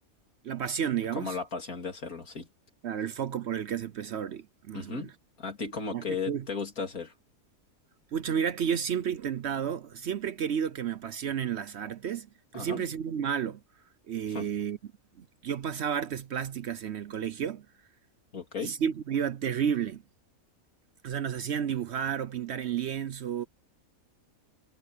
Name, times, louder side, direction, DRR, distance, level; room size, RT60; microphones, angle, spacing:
voice 1, 0.4-1.4 2.8-5.1 5.9-6.5 8.1-12.3 12.5-13.6 14.1-14.8 15.2-17.7 18.6-20.0 21.0-23.4, right 8 dB, 60° right, 0.9 m, -31 dB
voice 2, 1.2-2.5 4.7-5.1 5.4-7.1 12.5-12.8 14.3-14.5 18.3-18.8, left 5 dB, 75° left, 3.6 m, -35 dB
omnidirectional pair, 1.5 m